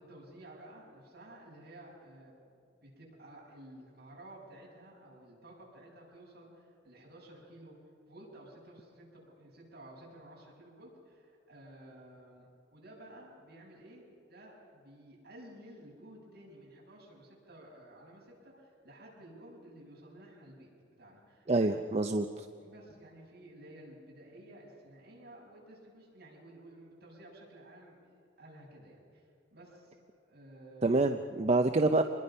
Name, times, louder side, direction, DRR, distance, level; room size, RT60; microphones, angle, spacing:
voice 1, 0.0-7.7 8.1-20.7 21.0-21.8 22.6-29.2 29.5-30.0 30.3-31.1, right 1 dB, 60° right, -3 dB, 6.8 m, -53 dB
voice 2, 21.5-22.5 30.8-32.0, right 2 dB, 35° right, 7 dB, 0.6 m, -27 dB
25.5 x 21.0 x 5.6 m, 2.4 s
head